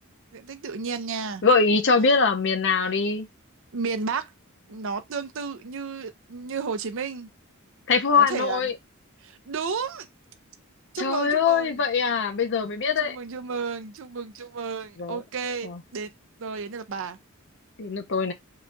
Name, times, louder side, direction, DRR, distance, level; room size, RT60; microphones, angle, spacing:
voice 1, 0.3-1.4 3.7-4.3 4.7-7.3 8.2-8.6 9.2-10.1 10.9-11.8 13.0-16.1 16.4-17.2, right 5 dB, 65° right, 0.6 m, -32 dB
voice 2, 1.4-3.3 7.9-8.7 11.0-13.2 15.0-15.2 15.6-15.8 17.8-18.3, left 5 dB, 60° left, 0.7 m, -22 dB
3.8 x 2.3 x 3.8 m
head